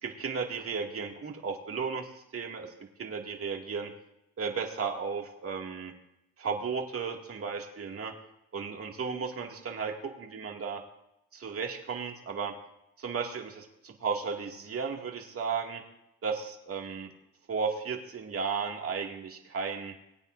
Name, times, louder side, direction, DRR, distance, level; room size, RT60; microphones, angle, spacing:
voice 1, 0.0-2.7 3.0-3.9 4.4-5.9 6.4-8.1 8.5-10.8 11.3-12.5 13.0-15.8 16.2-17.1 17.5-19.9, right 5 dB, 50° right, 1 dB, 2.3 m, -34 dB
22.0 x 9.0 x 2.7 m, 0.86 s
cardioid pair, 90°, 30 cm